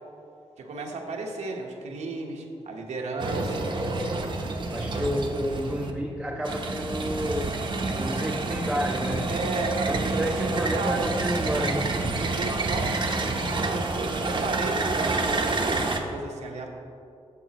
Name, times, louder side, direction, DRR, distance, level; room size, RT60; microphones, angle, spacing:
voice 1, 0.6-3.7 9.3-11.1 12.2-16.7, right 3 dB, 85° right, 0 dB, 1.2 m, -34 dB
sound 1, 3.2-5.9 6.4-16.0, right 3 dB, 45° right, 0.8 m, -28 dB
voice 2, 4.7-7.5 7.9-9.3 9.9-12.0, equal, 5° right, 0 dB, 0.5 m, -30 dB
11.0 x 7.3 x 3.0 m, 2.6 s
wide cardioid pair, 125°, 11 cm